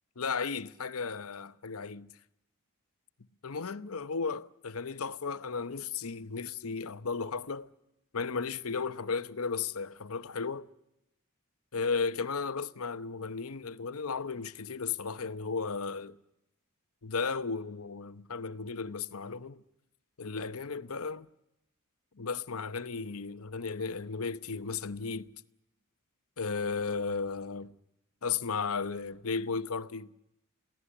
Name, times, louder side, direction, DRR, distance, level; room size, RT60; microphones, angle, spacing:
voice 1, 0.2-2.1 3.4-7.7 8.1-10.7 11.7-16.2 17.0-19.6 20.2-21.3 22.2-25.3 26.4-27.7 28.2-30.1, left 5 dB, 70° left, 0.9 m, -35 dB
23.0 x 16.0 x 10.0 m
head